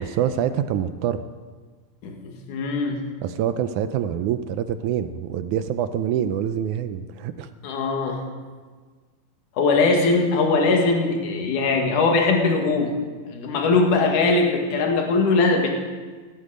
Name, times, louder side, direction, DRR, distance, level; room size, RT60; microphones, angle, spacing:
voice 1, 0.1-1.2 3.2-7.5, right 9 dB, 75° right, 11 dB, 1.8 m, -25 dB
voice 2, 2.0-3.0 7.6-8.2 9.6-12.9 13.3-15.7, left 3 dB, 70° left, 1 dB, 3.4 m, -21 dB
18.0 x 13.5 x 5.1 m, 1.4 s
omnidirectional pair, 3.9 m